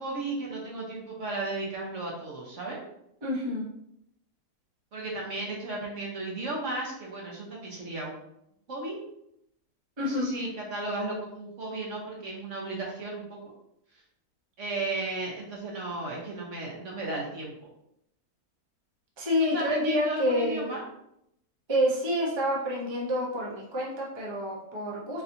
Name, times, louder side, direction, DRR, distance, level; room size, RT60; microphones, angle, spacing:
voice 1, 0.0-2.8 4.9-8.1 8.7-9.0 10.0-13.4 14.6-17.5 19.4-20.8, right 2 dB, 55° right, -2 dB, 1.2 m, -34 dB
voice 2, 3.2-3.6 10.0-10.3 19.2-20.7 21.7-25.2, equal, 20° right, -5 dB, 0.8 m, -28 dB
4.2 x 4.1 x 2.7 m, 0.78 s
omnidirectional pair, 1.7 m